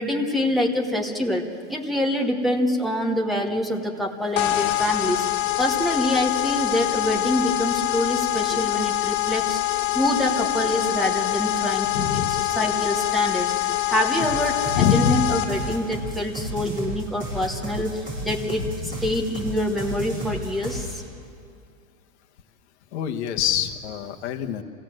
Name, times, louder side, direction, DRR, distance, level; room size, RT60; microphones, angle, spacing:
voice 1, 0.0-5.3 5.6-9.6 9.9-18.6 19.0-20.9, left 1 dB, ahead, 0 dB, 1.0 m, -25 dB
sound 1, 4.4-15.8, left 14 dB, 75° left, 1.6 m, -25 dB
voice 2, 11.9-12.4 14.7-15.3 16.6-16.7 18.6-19.1 22.9-24.6, left 8 dB, 60° left, 5 dB, 1.3 m, -25 dB
sound 2, 14.2-21.0, right 1 dB, 20° right, 7.9 m, -33 dB
26.5 x 17.0 x 7.7 m, 2.4 s
supercardioid pair, 175°, 39 cm